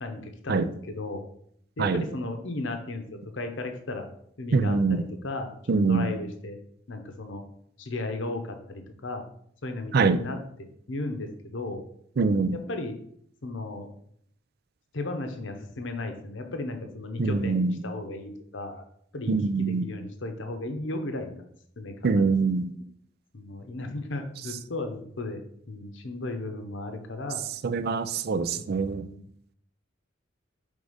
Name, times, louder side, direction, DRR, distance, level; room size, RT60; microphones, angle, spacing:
voice 1, 0.0-1.2 1.8-4.1 4.4-6.6 6.9-7.4 7.8-9.2 9.6-10.4 10.9-11.8 12.5-13.0 13.4-13.9 14.9-18.8 19.1-21.4 21.8-22.3 23.3-27.5 28.8-29.2, left 2 dB, 70° left, 0.8 m, -35 dB
voice 2, 4.5-5.0 5.7-6.1 9.9-10.2 12.2-12.6 17.2-17.7 19.3-19.8 22.0-22.7 27.6-29.1, right 4 dB, 55° right, 0.4 m, -24 dB
5.4 x 3.5 x 5.0 m
head